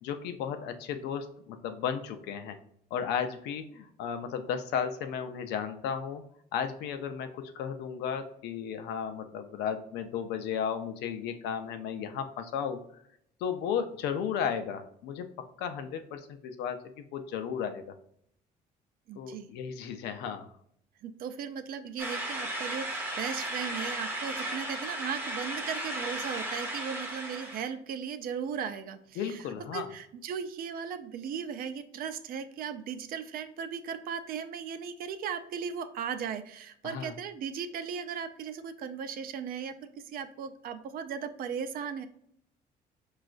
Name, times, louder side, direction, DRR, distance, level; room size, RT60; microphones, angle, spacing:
voice 1, 0.0-2.6 2.9-6.2 6.5-12.8 13.4-17.9 19.2-20.5 29.2-29.9 36.8-37.1, left 7 dB, 85° left, 8 dB, 0.5 m, -34 dB
voice 2, 19.1-19.5 21.0-39.7 40.1-42.1, right 7 dB, 60° right, 9 dB, 0.4 m, -37 dB
sound 1, 22.0-27.7, right 1 dB, 10° right, 0.7 m, -35 dB
4.9 x 2.3 x 2.4 m, 0.69 s
cardioid pair, 110°, 17 cm